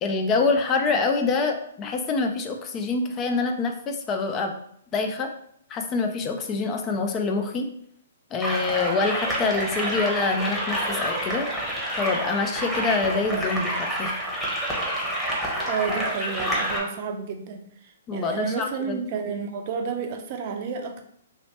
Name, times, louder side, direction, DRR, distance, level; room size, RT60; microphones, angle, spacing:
voice 1, 0.0-4.5 4.9-5.3 5.7-7.7 8.3-11.5 11.9-14.2 18.1-19.0, left 4 dB, 25° left, 4 dB, 0.5 m, -26 dB
sound 1, 8.4-16.8, right 1 dB, ahead, 1.0 m, -28 dB
voice 2, 15.7-17.6 18.1-21.0, right 6 dB, 45° right, 5 dB, 0.6 m, -30 dB
3.1 x 2.8 x 3.2 m, 0.68 s
hypercardioid pair, 130°, 0 cm